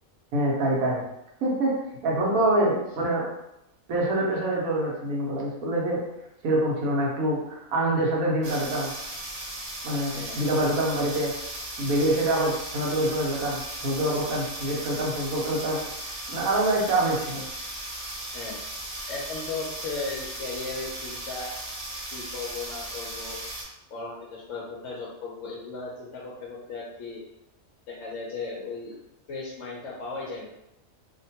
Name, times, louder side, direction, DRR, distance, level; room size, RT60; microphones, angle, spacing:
voice 1, 0.3-1.0 1.4-1.8 2.0-3.3 3.9-6.0 6.4-8.9 9.8-11.3 11.8-17.4, right 1 dB, 85° right, -3 dB, 1.2 m, -25 dB
sound 1, 8.4-23.6, right 1 dB, 45° right, 0.5 m, -37 dB
voice 2, 19.1-21.5 22.1-23.4 23.9-27.2 27.9-29.0 29.3-30.5, left 3 dB, 70° left, -4 dB, 0.8 m, -36 dB
2.9 x 2.2 x 2.7 m, 0.87 s
omnidirectional pair, 1.4 m